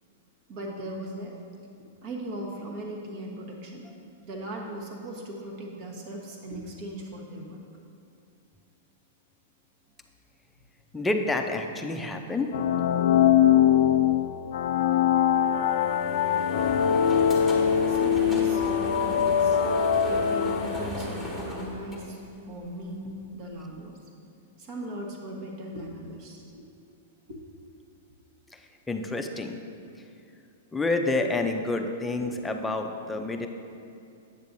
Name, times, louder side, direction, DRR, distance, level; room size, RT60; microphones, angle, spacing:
voice 1, 0.5-1.4 2.0-3.9 4.2-7.6 17.9-19.6 20.1-24.0 24.6-26.6 27.3-27.4 32.2-32.3, right 1 dB, 45° right, 0 dB, 1.2 m, -38 dB
voice 2, 10.9-12.5 28.5-28.6 28.9-29.6 30.7-33.5, left 2 dB, 10° left, 4 dB, 0.5 m, -28 dB
sound 1, 12.5-21.1, left 9 dB, 70° left, 0.3 m, -22 dB
sound 2, 15.3-22.6, left 1 dB, 5° right, 1.4 m, -36 dB
8.1 x 6.8 x 2.7 m, 2.6 s
hypercardioid pair, 125°, 0 cm